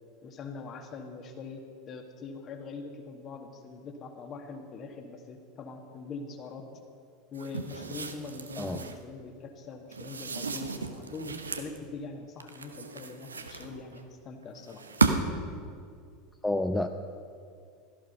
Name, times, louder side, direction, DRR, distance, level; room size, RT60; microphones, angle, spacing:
voice 1, 0.2-6.7 7.3-14.8, left 4 dB, 35° left, 4 dB, 2.0 m, -43 dB
sound 1, 7.3-9.0 9.9-11.8 12.4-14.0 14.7-15.5, right 4 dB, 75° right, 1.0 m, -33 dB
voice 2, 16.4-16.9, left 1 dB, 5° left, 6 dB, 0.7 m, -29 dB
17.0 x 14.0 x 5.6 m, 2.3 s
figure-of-eight pair, 80°, 0 cm